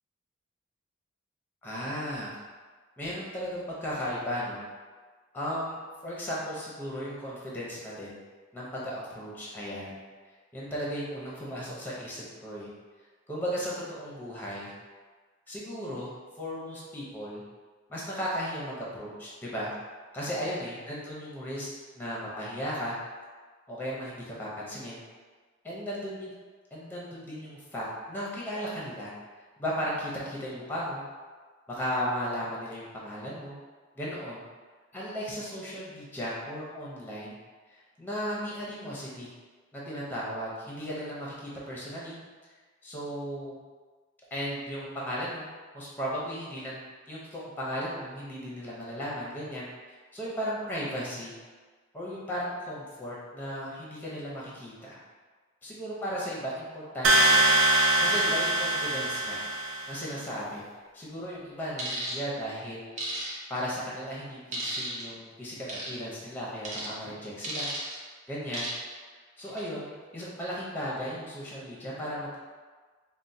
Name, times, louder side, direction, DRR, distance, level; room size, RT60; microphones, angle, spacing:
voice 1, 1.6-2.4 3.0-4.6 5.3-8.2 8.5-10.0 10.5-12.7 13.3-14.7 15.5-16.1 16.4-17.4 17.9-19.7 20.1-21.7 21.9-23.0 23.7-25.0 25.6-26.3 26.7-29.1 29.6-31.0 31.7-33.5 34.0-34.5 34.9-37.4 37.7-39.3 39.7-42.2 42.8-43.6 44.3-45.5 45.7-46.8 47.1-49.7 50.1-51.3 51.9-55.0 55.6-57.5 58.0-59.4 59.9-60.6 60.9-63.0 63.5-67.7 68.3-68.7 69.4-72.4, equal, 10° left, -6 dB, 0.6 m, -35 dB
sound 1, 57.0-60.0, right 1 dB, 75° right, 0.4 m, -23 dB
sound 2, 61.8-62.2 63.0-63.6 64.5-65.0 65.7-66.0 66.6-66.9 67.4-67.9 68.5-68.9 69.4-69.6, right 1 dB, 35° right, 0.7 m, -34 dB
4.3 x 2.1 x 2.6 m, 1.4 s
head